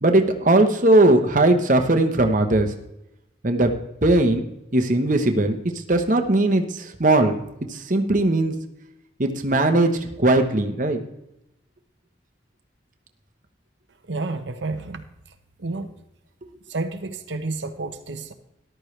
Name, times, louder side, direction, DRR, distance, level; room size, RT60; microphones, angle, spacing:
voice 1, 0.0-2.7 3.4-4.4 4.7-5.6 5.9-7.3 7.7-8.5 9.2-11.0, right 2 dB, 45° right, 6 dB, 1.1 m, -19 dB
voice 2, 14.1-15.0 15.6-15.9 16.7-18.3, right 3 dB, 80° right, 7 dB, 0.9 m, -30 dB
13.5 x 12.0 x 3.3 m, 0.86 s
head